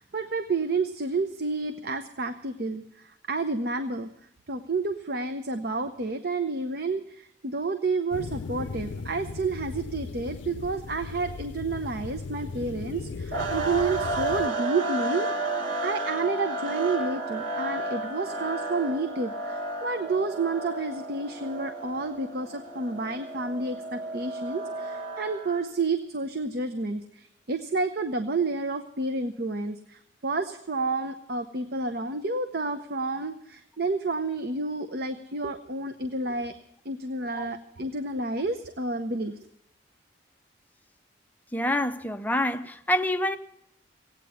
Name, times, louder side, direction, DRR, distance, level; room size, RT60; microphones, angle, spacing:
voice 1, 0.0-4.1 4.5-36.5 36.8-39.3, right 3 dB, 55° right, 0.8 m, -30 dB
sound 1, 8.1-14.5, left 4 dB, 70° left, 0.5 m, -37 dB
sound 2, 13.3-25.7, right 2 dB, 85° right, 1.8 m, -32 dB
voice 2, 41.5-43.4, left 1 dB, 10° left, 0.5 m, -27 dB
16.5 x 9.1 x 8.3 m
head